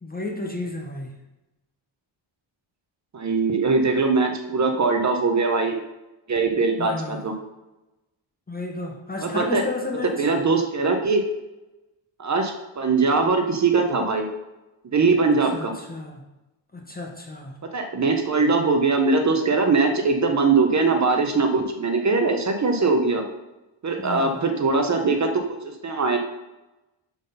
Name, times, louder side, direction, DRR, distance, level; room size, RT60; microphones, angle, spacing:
voice 1, 0.0-1.1 6.8-7.3 8.5-10.3 15.5-16.2 16.7-17.6 24.0-24.3, left 2 dB, 20° left, 1 dB, 0.6 m, -32 dB
voice 2, 3.1-5.8 6.3-7.3 9.2-9.7 10.2-11.3 12.2-14.3 14.8-15.7 17.7-23.2 23.8-25.3 25.8-26.2, right 4 dB, 35° right, 4 dB, 0.7 m, -21 dB
7.1 x 3.9 x 5.5 m, 1.0 s
wide cardioid pair, 175°, 49 cm